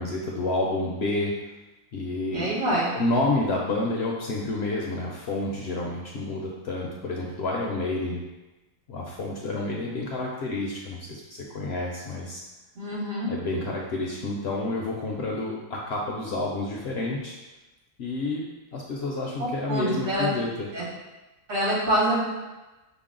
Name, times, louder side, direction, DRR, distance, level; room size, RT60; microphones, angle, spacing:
voice 1, 0.0-1.3 1.9-8.2 8.9-12.4 13.3-17.4 18.0-20.7, left 2 dB, 65° left, -2 dB, 0.7 m, -29 dB
voice 2, 2.3-2.9 12.8-13.3 19.7-20.3 20.7-20.8 21.5-22.2, right 1 dB, 60° right, -7 dB, 1.9 m, -25 dB
5.9 x 2.1 x 3.7 m, 1.1 s
omnidirectional pair, 1.4 m